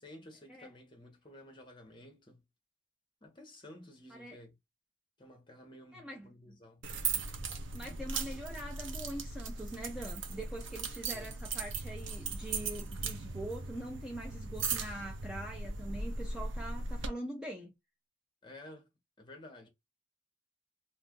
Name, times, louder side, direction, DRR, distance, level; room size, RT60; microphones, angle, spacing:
voice 1, 0.0-2.4 3.2-4.5 5.2-6.8 11.1-11.3 18.4-18.9 19.2-19.7, left 1 dB, 25° left, 1.0 m, -53 dB
voice 2, 5.9-6.6 7.1-7.3 7.7-17.7, right 1 dB, 5° right, 0.5 m, -43 dB
sound 1, 6.8-17.1, right 4 dB, 75° right, 0.7 m, -38 dB
2.6 x 2.5 x 3.6 m
head